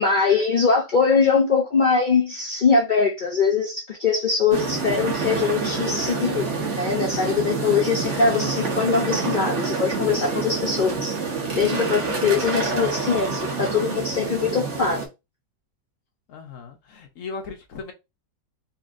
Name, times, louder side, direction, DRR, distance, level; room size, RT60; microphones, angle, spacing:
voice 1, 0.0-6.4 6.7-11.2 11.6-15.0, left 5 dB, 75° left, 0.4 m, -22 dB
sound 1, 4.5-15.1, right 4 dB, 45° right, 1.2 m, -27 dB
voice 2, 16.3-17.9, left 4 dB, 55° left, 1.1 m, -37 dB
4.2 x 3.0 x 2.5 m
omnidirectional pair, 1.9 m